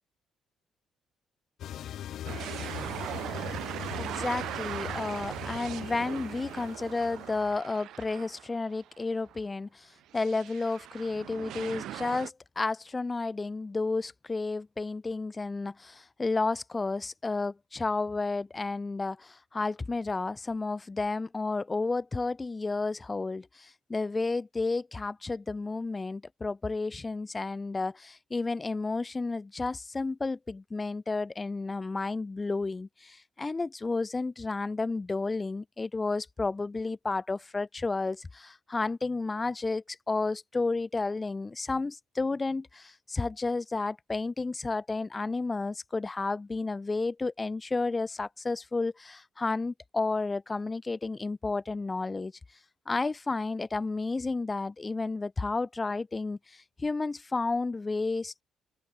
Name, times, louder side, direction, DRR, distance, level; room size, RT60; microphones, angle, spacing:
sound 1, 1.6-7.6, left 11 dB, 70° left, 5.8 m, -41 dB
sound 2, 2.3-8.8 9.2-9.3 10.1-12.3, right 13 dB, 80° right, 0.9 m, -39 dB
voice 1, 4.0-52.3 52.8-58.4, left 3 dB, 25° left, 1.7 m, -32 dB
open air
cardioid pair, 85°, 0 cm